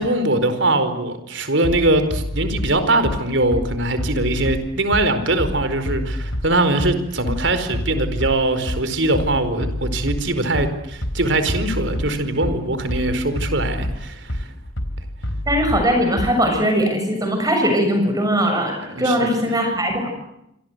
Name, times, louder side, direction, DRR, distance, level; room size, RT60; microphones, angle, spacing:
voice 1, 0.0-14.5 18.9-19.2, right 2 dB, 65° right, 10 dB, 4.6 m, -21 dB
Bass drum, 1.6-16.6, equal, 90° left, 3.9 m, -28 dB
voice 2, 15.5-20.1, equal, 20° right, 3 dB, 7.1 m, -20 dB
28.0 x 26.5 x 8.1 m, 0.81 s
head